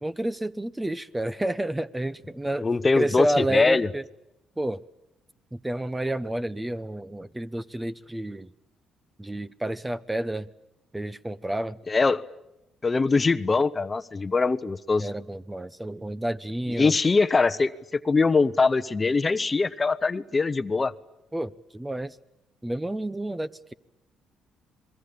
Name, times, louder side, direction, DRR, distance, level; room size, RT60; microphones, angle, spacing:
voice 1, 0.0-2.7 3.0-4.0 4.6-4.8 5.5-8.5 9.2-10.5 10.9-11.8 15.0-16.9 21.3-22.2 22.6-23.7, right 1 dB, 10° right, 15 dB, 0.9 m, -30 dB
voice 2, 2.6-3.9 11.9-12.2 12.8-15.1 16.7-20.9, left 4 dB, 30° left, 14 dB, 0.9 m, -22 dB
26.5 x 21.0 x 8.7 m, 0.88 s
supercardioid pair, 75°, 0 cm